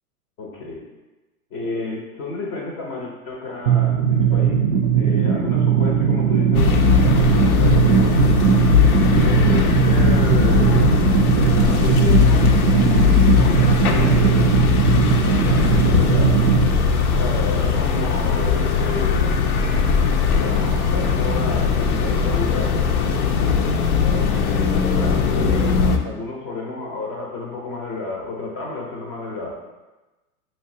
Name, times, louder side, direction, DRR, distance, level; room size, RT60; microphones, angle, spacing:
voice 1, 0.4-0.8 1.5-4.6 4.9-8.4 9.1-11.0 11.3-14.5 15.3-16.4 17.1-19.4 19.7-19.9 20.2-22.9 24.0-29.6, left 3 dB, 25° left, -2 dB, 0.6 m, -31 dB
sound 1, 3.7-16.7, right 7 dB, 50° right, 0.5 m, -18 dB
sound 2, 6.5-26.0, left 6 dB, 70° left, 0.6 m, -19 dB
5.5 x 2.1 x 2.7 m, 1.1 s
hypercardioid pair, 110°, 46 cm